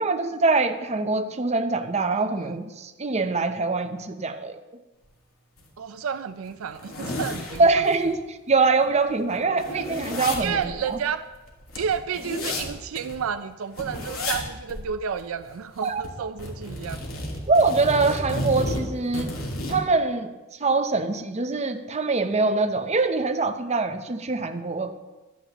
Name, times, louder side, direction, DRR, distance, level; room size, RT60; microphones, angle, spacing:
voice 1, 0.0-4.6 7.6-8.2 8.5-11.0 15.8-16.0 17.5-19.4 19.7-20.3 20.6-24.9, right 3 dB, 35° right, 7 dB, 0.8 m, -23 dB
voice 2, 2.0-2.6 5.8-7.8 9.7-9.9 10.4-11.2 11.7-17.0, right 7 dB, 75° right, 11 dB, 0.4 m, -31 dB
sound 1, 5.6-5.7 6.1-6.2 6.5-8.1 8.5-8.6 8.8-13.2 13.7-14.4 14.7-14.9 15.2-16.1 16.4-19.8, left 1 dB, 80° left, 2.4 m, -32 dB
15.5 x 11.5 x 3.0 m, 1.2 s
head